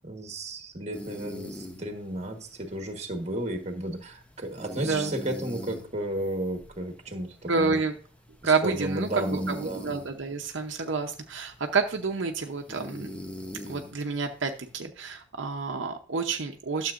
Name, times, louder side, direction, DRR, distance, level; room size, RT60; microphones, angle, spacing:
voice 1, 0.0-7.8 8.4-9.8, right 1 dB, 35° right, 5 dB, 1.3 m, -33 dB
sound 1, 0.9-14.8, equal, 5° left, 0.7 m, -44 dB
voice 2, 7.5-7.9 8.4-13.2 13.7-16.9, right 4 dB, 70° right, 3 dB, 0.8 m, -29 dB
12.5 x 7.2 x 2.5 m, 0.39 s
head